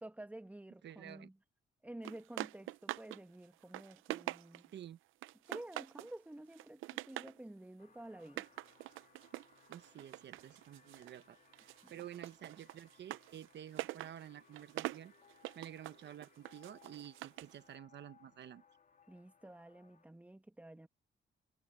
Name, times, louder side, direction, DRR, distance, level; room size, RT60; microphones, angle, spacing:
voice 1, 0.0-1.4 1.8-4.7 5.5-8.5 11.8-11.9 19.1-20.9, right 1 dB, 5° right, 1.7 m, -51 dB
voice 2, 0.8-1.3 4.7-5.0 9.7-15.1 15.5-18.6, right 10 dB, 60° right, 1.1 m, -51 dB
sound 1, 2.0-3.2 3.5-4.8 5.2-6.1 6.5-7.4 8.2-11.2 11.5-17.6, right 16 dB, 90° right, 0.7 m, -45 dB
sound 2, 7.8-20.1, left 7 dB, 45° left, 2.1 m, -67 dB
cardioid pair, 90°, 20 cm